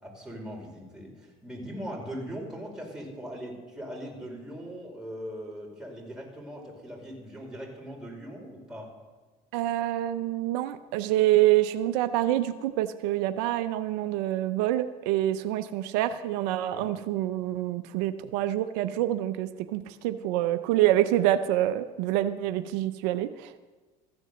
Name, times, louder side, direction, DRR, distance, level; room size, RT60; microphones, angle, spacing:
voice 1, 0.0-8.9 16.7-16.9, equal, 5° right, -2 dB, 4.7 m, -40 dB
voice 2, 9.5-23.5, right 14 dB, 85° right, 10 dB, 0.6 m, -26 dB
14.5 x 8.1 x 6.7 m, 1.3 s
supercardioid pair, 90°, 20 cm